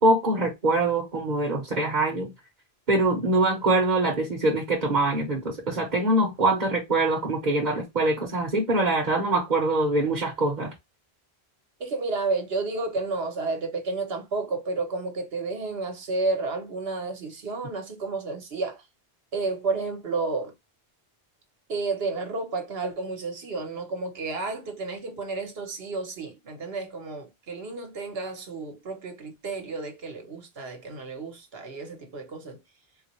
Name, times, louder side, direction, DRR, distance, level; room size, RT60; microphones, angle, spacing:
voice 1, 0.0-2.3 2.9-10.7, right 2 dB, 45° right, 1.1 m, -24 dB
voice 2, 11.8-18.8 19.3-20.5 21.7-32.6, right 3 dB, 70° right, 1.2 m, -31 dB
3.8 x 2.4 x 2.9 m
omnidirectional pair, 1.1 m